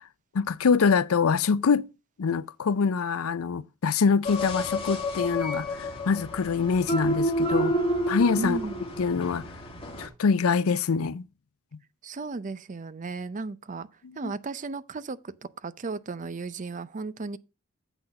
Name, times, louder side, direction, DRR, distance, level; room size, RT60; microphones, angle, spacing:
voice 1, 0.3-1.9 2.2-7.8 8.1-8.6 9.0-9.4 10.0-11.3 14.2-14.3, left 5 dB, 80° left, 0.5 m, -24 dB
sound 1, 4.2-10.1, equal, 25° left, 2.2 m, -29 dB
voice 2, 8.4-8.8 12.0-13.9 14.2-17.4, right 3 dB, 35° right, 0.5 m, -35 dB
8.1 x 6.0 x 5.2 m
head